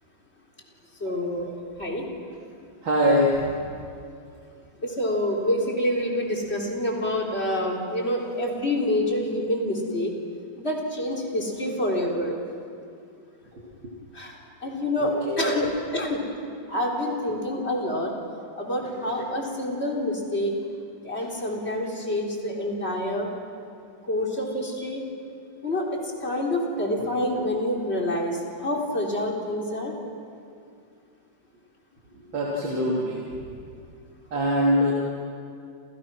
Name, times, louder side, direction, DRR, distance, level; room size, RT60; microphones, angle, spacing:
voice 1, 1.0-1.5 1.8-2.0 4.8-10.1 10.6-12.3 14.1-15.7 15.9-16.2 16.7-18.1 18.6-20.5 21.0-23.3 24.1-25.0 25.6-30.0, left 1 dB, 35° left, 0 dB, 3.9 m, -27 dB
voice 2, 2.8-3.5 15.0-15.5 18.8-18.9 32.3-33.2 34.3-34.9, equal, 85° right, -4 dB, 3.7 m, -23 dB
29.0 x 29.0 x 6.2 m, 2.5 s
omnidirectional pair, 2.0 m